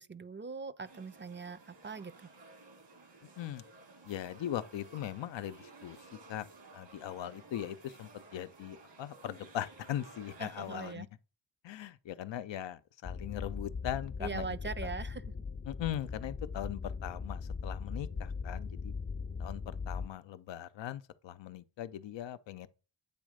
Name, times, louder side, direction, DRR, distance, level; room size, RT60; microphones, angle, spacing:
voice 1, 0.0-2.3 10.4-11.1 14.2-15.2, right 4 dB, 25° right, 0.4 m, -41 dB
sound 1, 0.8-11.0, right 3 dB, 80° right, 1.9 m, -55 dB
voice 2, 4.0-6.0 6.3-6.5 6.7-11.1 11.6-14.5 14.8-14.9 15.7-18.9 19.4-22.7, left 11 dB, 90° left, 0.6 m, -40 dB
sound 2, 13.0-20.1, left 5 dB, 25° left, 0.4 m, -39 dB
8.3 x 3.1 x 4.9 m
cardioid pair, 60°, 43 cm